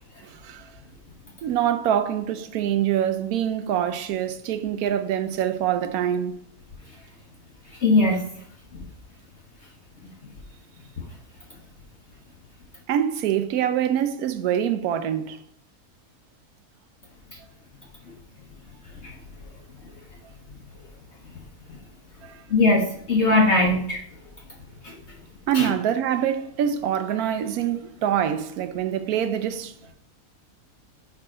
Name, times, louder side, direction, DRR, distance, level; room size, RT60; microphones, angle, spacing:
voice 1, 0.2-0.7 1.4-6.3 12.9-15.4 22.2-22.4 25.5-29.9, right 10 dB, 85° right, 1.1 m, -25 dB
voice 2, 7.8-8.3 19.0-19.1 22.5-24.0 24.8-25.0 25.5-25.7, left 2 dB, 55° left, 1.2 m, -20 dB
4.9 x 4.6 x 4.8 m
omnidirectional pair, 1.5 m